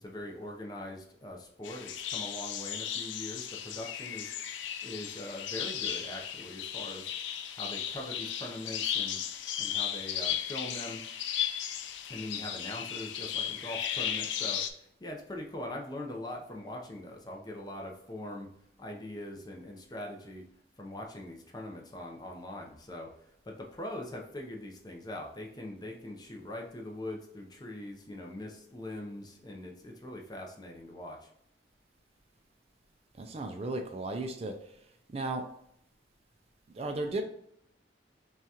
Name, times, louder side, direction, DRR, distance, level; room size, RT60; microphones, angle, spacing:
voice 1, 0.0-7.1 7.5-9.2 9.6-11.0 12.1-18.5 18.8-20.5 20.8-23.1 23.4-31.3, left 1 dB, 20° left, 1 dB, 0.6 m, -42 dB
sound 1, 1.6-14.7, left 9 dB, 85° left, 0.4 m, -35 dB
voice 2, 33.2-34.5 35.1-35.4 36.7-37.2, right 2 dB, 35° right, 6 dB, 0.3 m, -34 dB
5.5 x 2.4 x 2.8 m, 0.72 s
head